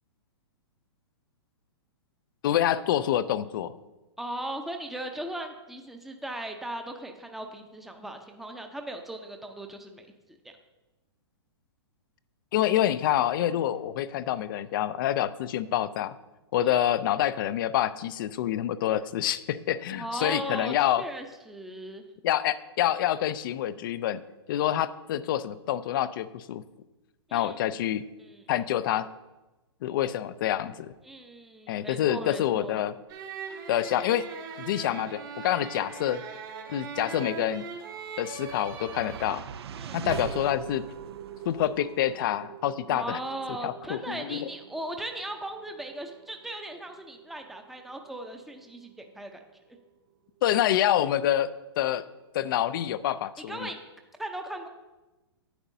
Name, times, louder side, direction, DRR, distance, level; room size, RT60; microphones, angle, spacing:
voice 1, 2.4-3.7 12.5-16.2 16.5-21.0 22.2-24.2 24.5-26.6 27.3-28.0 28.5-29.1 29.8-30.9 31.7-32.9 33.7-34.3 34.6-36.2 36.7-37.7 38.2-39.4 39.9-40.8 41.5-43.2 43.6-44.5 50.4-51.5 51.8-52.0 52.3-53.7, left 11 dB, 50° left, 15 dB, 0.4 m, -27 dB
voice 2, 4.2-10.1 16.6-16.8 19.9-22.0 27.3-27.6 28.2-28.4 31.0-32.8 39.8-40.0 42.9-49.4 49.7-49.8 53.5-53.8 54.2-54.7, right 1 dB, ahead, 4 dB, 0.6 m, -38 dB
sound 1, 33.1-39.3, right 6 dB, 50° right, 1.5 m, -40 dB
sound 2, 37.5-49.9, right 8 dB, 65° right, 0.4 m, -43 dB
10.0 x 8.7 x 2.7 m, 1.1 s
hypercardioid pair, 115°, 14 cm